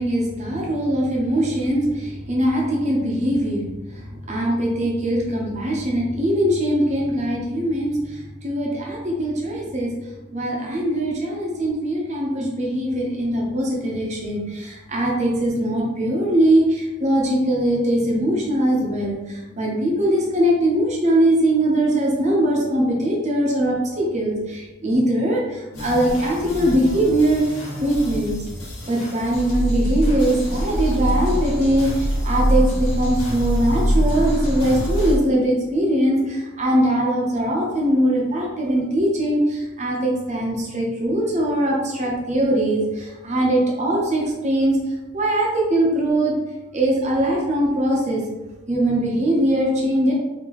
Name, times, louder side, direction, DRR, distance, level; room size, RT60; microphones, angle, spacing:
voice 1, 0.0-28.4 28.9-44.8 45.1-46.3 46.7-48.2 48.7-50.1, right 1 dB, 35° right, -3 dB, 0.8 m, -21 dB
sound 1, 25.7-35.2, equal, 90° left, 1.4 m, -24 dB
3.5 x 2.8 x 3.0 m, 1.1 s
head